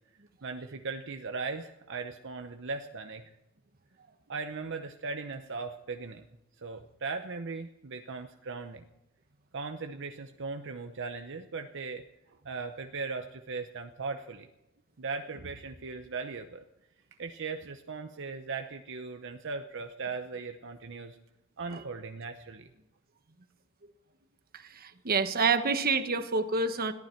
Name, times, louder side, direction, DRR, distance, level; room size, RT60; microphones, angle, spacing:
voice 1, 0.4-3.3 4.3-6.3 6.6-8.8 9.5-14.5 15.0-16.6 17.2-21.2 21.6-22.7, right 4 dB, 60° right, 6 dB, 0.8 m, -38 dB
voice 2, 24.5-26.9, right 4 dB, 45° right, 9 dB, 1.2 m, -28 dB
21.5 x 14.5 x 4.5 m, 0.93 s
head